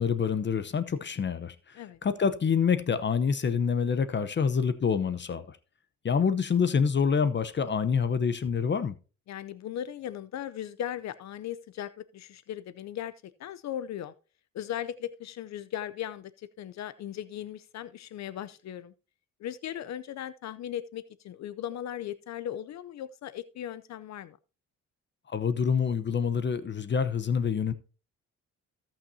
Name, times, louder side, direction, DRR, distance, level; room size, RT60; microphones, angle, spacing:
voice 1, 0.0-5.6 6.0-8.9 25.3-27.7, left 6 dB, 35° left, 0.8 m, -27 dB
voice 2, 9.3-14.1 14.5-18.9 19.4-24.4, left 11 dB, 65° left, 0.6 m, -38 dB
16.5 x 5.9 x 2.7 m
cardioid pair, 90°, 30 cm